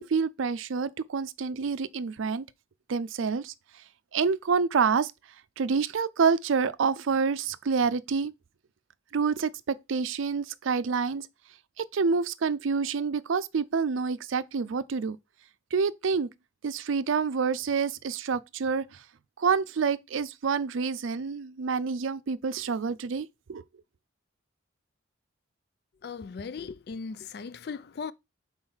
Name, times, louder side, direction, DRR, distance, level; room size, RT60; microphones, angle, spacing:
voice 1, 0.0-2.5 2.9-3.5 4.1-5.1 5.6-8.3 9.1-11.3 11.8-15.2 15.7-16.3 16.6-19.0 19.4-23.6, right 5 dB, 85° right, 0.5 m, -27 dB
voice 2, 26.0-28.1, left 5 dB, 55° left, 0.4 m, -38 dB
5.5 x 4.3 x 4.4 m
head